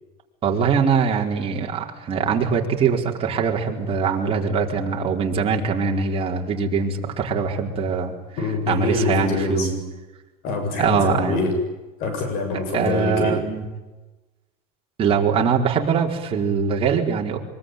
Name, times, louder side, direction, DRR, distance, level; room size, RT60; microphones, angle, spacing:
voice 1, 0.4-8.1 8.7-9.8 10.8-11.5 12.7-13.6 15.0-17.4, right 6 dB, 30° right, 0 dB, 4.7 m, -22 dB
voice 2, 8.4-9.7 10.4-11.5 12.0-13.4, left 3 dB, 55° left, 5 dB, 7.6 m, -24 dB
24.0 x 23.5 x 9.4 m, 1.1 s
supercardioid pair, 140°, 19 cm